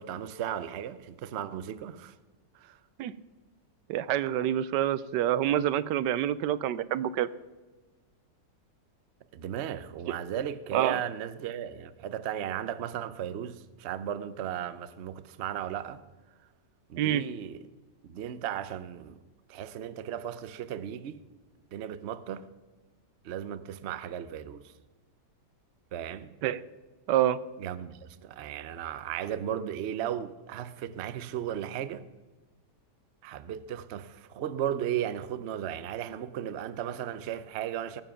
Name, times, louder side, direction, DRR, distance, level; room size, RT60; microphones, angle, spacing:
voice 1, 0.0-2.1 2.5-2.8 9.3-16.0 16.9-17.6 18.0-19.2 19.5-21.2 21.7-22.5 23.2-24.7 25.9-26.3 27.6-32.0 33.2-38.0, right 10 dB, 60° right, 0.7 m, -35 dB
voice 2, 3.9-7.3 10.7-11.0 17.0-17.2 26.4-26.6 27.1-27.4, right 11 dB, 85° right, 1.2 m, -27 dB
18.5 x 7.4 x 5.7 m
omnidirectional pair, 1.8 m